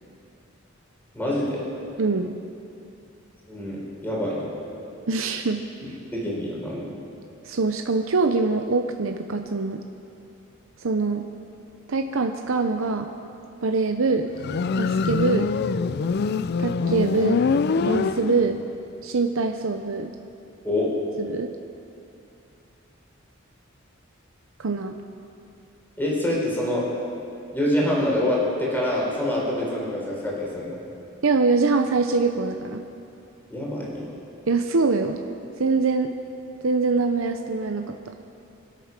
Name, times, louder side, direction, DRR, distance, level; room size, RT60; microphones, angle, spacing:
voice 1, 1.1-1.6 3.5-4.5 6.1-6.9 20.6-20.9 26.0-26.9 27.5-30.8 33.5-34.1, left 1 dB, 10° left, -5 dB, 4.0 m, -26 dB
voice 2, 2.0-2.4 5.1-5.6 7.4-9.8 10.8-11.3 11.9-13.1 13.6-14.3 14.8-15.5 16.6-17.5 17.8-18.6 19.0-20.1 21.2-21.5 24.6-25.0 31.2-32.8 34.5-35.2 35.6-36.1 36.6-38.1, right 3 dB, 75° right, 5 dB, 0.7 m, -24 dB
Motorcycle, 14.4-18.7, left 5 dB, 50° left, 0.4 m, -24 dB
24.5 x 8.4 x 6.0 m, 2.7 s
head